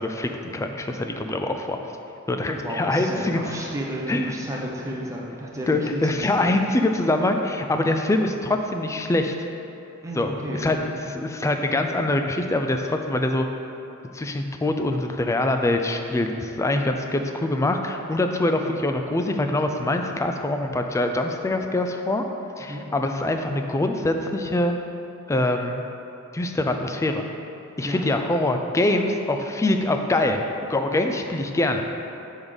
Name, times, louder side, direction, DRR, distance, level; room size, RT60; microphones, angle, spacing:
voice 1, 0.0-1.8 2.3-3.4 4.1-4.3 5.7-9.3 10.2-13.5 14.1-22.2 22.6-24.8 25.3-25.8 26.3-27.3 27.8-31.9, left 2 dB, 15° left, 5 dB, 0.3 m, -24 dB
voice 2, 2.3-6.6 10.0-10.6 22.7-22.8 27.8-28.1, equal, 15° right, -3 dB, 0.8 m, -32 dB
6.2 x 3.7 x 5.1 m, 2.9 s
head